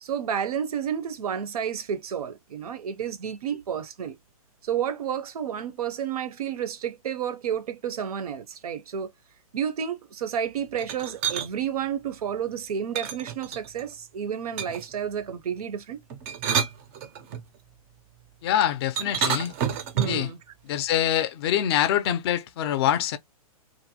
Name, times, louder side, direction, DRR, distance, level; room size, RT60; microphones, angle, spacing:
voice 1, 0.0-4.1 4.6-9.1 9.5-16.0 20.0-20.4, right 8 dB, 80° right, 0.6 m, -31 dB
sound 1, 10.8-11.5 12.9-13.9 14.6-15.0 16.1-17.4 19.0-20.3, right 8 dB, 25° right, 0.4 m, -29 dB
voice 2, 18.4-19.5 20.1-20.3 20.6-23.2, left 11 dB, 40° left, 0.4 m, -24 dB
2.5 x 2.1 x 2.7 m
hypercardioid pair, 150°, 19 cm